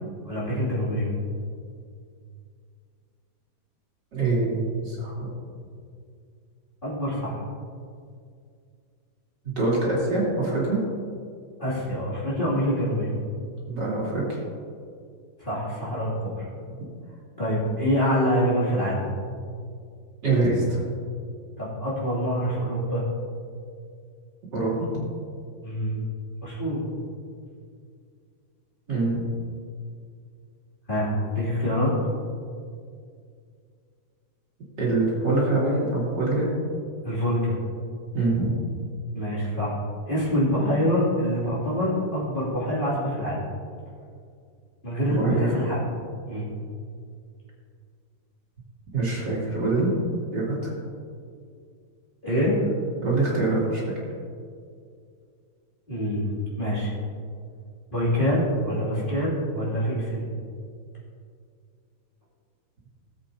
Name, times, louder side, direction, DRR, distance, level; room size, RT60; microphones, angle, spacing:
voice 1, 0.3-1.1 6.8-7.4 11.6-13.1 15.4-16.5 17.4-19.0 21.6-23.0 25.6-26.0 26.4-26.8 30.9-31.9 37.0-37.6 39.1-39.8 40.1-43.4 44.8-45.8 46.3-46.5 52.2-52.6 55.9-56.2 56.6-56.9 57.9-60.3, equal, 25° left, -8 dB, 3.0 m, -25 dB
voice 2, 4.1-5.3 9.4-10.8 13.7-14.4 16.7-16.8 20.2-20.8 24.5-25.1 28.9-29.2 34.8-36.5 38.1-38.5 45.1-45.6 48.9-49.9 50.3-50.7 53.0-53.8, right 2 dB, 60° right, -6 dB, 3.4 m, -24 dB
18.0 x 8.1 x 2.8 m, 2.3 s
omnidirectional pair, 2.1 m